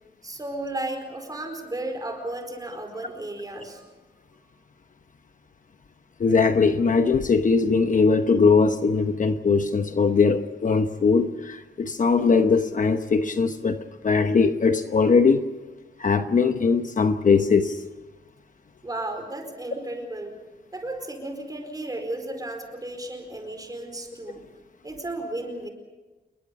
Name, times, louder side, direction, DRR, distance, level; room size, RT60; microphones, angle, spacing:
voice 1, 0.2-3.9 18.8-20.4 20.7-24.4 24.8-25.7, right 2 dB, 20° right, 4.6 m, -34 dB
voice 2, 6.2-15.4 16.0-17.8, left 4 dB, 45° left, 1.0 m, -20 dB
28.5 x 22.0 x 5.3 m
wide cardioid pair, 165°, 18 cm